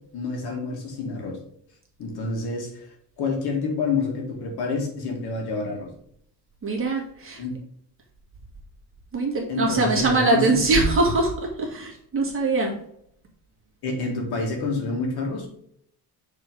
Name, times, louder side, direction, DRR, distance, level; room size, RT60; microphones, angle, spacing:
voice 1, 0.1-1.4 2.0-5.9 7.4-7.6 9.5-11.0 13.8-15.5, left 3 dB, 65° left, 1 dB, 2.1 m, -28 dB
voice 2, 6.6-7.4 9.1-12.8, right 3 dB, 30° right, -1 dB, 1.9 m, -22 dB
6.6 x 3.7 x 5.3 m, 0.69 s
cardioid pair, 140°, 41 cm